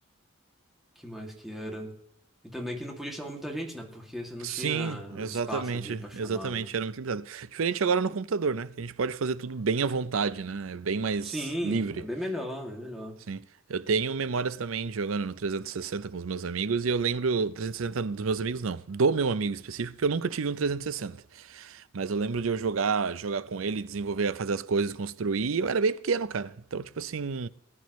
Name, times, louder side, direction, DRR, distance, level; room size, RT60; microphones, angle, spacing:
voice 1, 1.0-1.9 2.5-6.7 11.2-13.1, equal, ahead, 2.4 m, -37 dB
voice 2, 4.4-12.0 13.3-13.4 13.7-27.5, right 5 dB, 80° right, 0.6 m, -29 dB
19.5 x 11.0 x 3.1 m
head